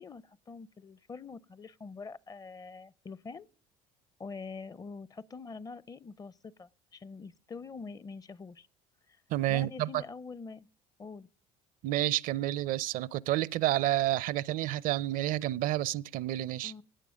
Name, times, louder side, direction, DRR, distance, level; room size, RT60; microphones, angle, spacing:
voice 1, 0.0-3.5 4.2-8.7 9.1-9.2 9.5-10.7 11.0-11.3 16.6-16.8, left 4 dB, 25° left, 0.5 m, -45 dB
voice 2, 9.3-10.0 11.8-16.7, right 14 dB, 65° right, 0.6 m, -30 dB
16.5 x 8.9 x 6.3 m
supercardioid pair, 105°, 15 cm